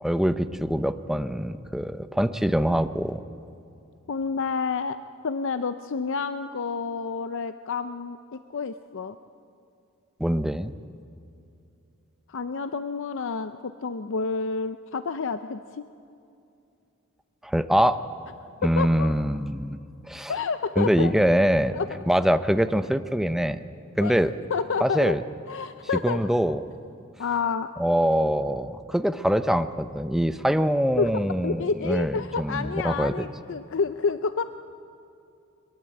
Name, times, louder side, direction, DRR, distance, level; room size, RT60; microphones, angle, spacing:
voice 1, 0.0-3.2 10.2-10.7 17.4-18.0 18.6-19.8 20.0-20.3 20.8-21.8 22.1-23.6 24.0-24.3 24.8-25.2 26.0-26.6 27.8-33.2, equal, ahead, 10 dB, 0.6 m, -24 dB
voice 2, 4.1-5.0 5.2-9.2 12.3-15.9 18.6-19.1 20.3-21.1 21.7-21.9 24.0-24.2 24.5-25.1 25.5-26.2 27.2-27.7 31.0-31.1 31.4-34.4, left 5 dB, 60° left, 10 dB, 0.6 m, -29 dB
22.5 x 22.5 x 7.8 m, 2.7 s
head